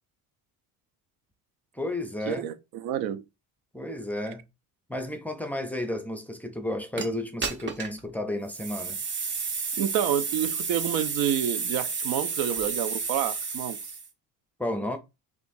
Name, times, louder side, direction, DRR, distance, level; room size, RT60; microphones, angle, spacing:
voice 1, 1.7-2.5 3.7-4.4 4.9-9.0 14.6-15.0, left 1 dB, 5° left, 0.5 m, -32 dB
voice 2, 2.3-3.2 9.8-13.8, right 10 dB, 85° right, 0.6 m, -29 dB
sound 1, 7.0-7.1 7.4-8.0 8.5-14.1, right 5 dB, 30° right, 0.9 m, -31 dB
6.7 x 2.5 x 2.6 m
cardioid pair, 140°, 35 cm